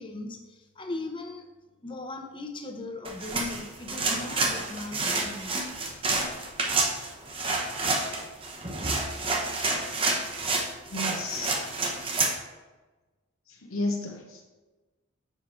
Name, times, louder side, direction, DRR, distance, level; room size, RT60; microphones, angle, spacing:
voice 1, 0.0-1.5 1.8-5.5, left 2 dB, 25° left, 5 dB, 0.7 m, -38 dB
sound 1, 3.0-12.4, right 3 dB, 25° right, 0.8 m, -29 dB
voice 2, 10.9-11.6 13.5-14.4, left 2 dB, 90° left, 0 dB, 1.0 m, -32 dB
6.9 x 6.1 x 4.4 m, 1.2 s
head